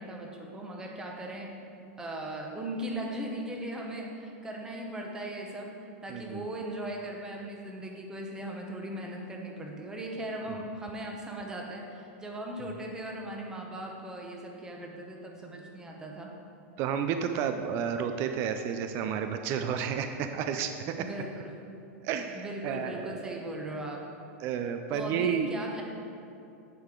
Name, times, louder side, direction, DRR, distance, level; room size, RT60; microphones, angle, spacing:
voice 1, 0.0-1.6 2.0-5.7 6.0-16.3 20.9-21.6 22.3-24.1 24.9-25.8, right 1 dB, 10° right, 0 dB, 0.8 m, -38 dB
voice 2, 6.1-6.4 16.8-21.0 22.0-23.4 24.4-25.5, right 7 dB, 35° right, 7 dB, 0.4 m, -31 dB
9.4 x 6.5 x 3.7 m, 2.7 s
supercardioid pair, 160°, 7 cm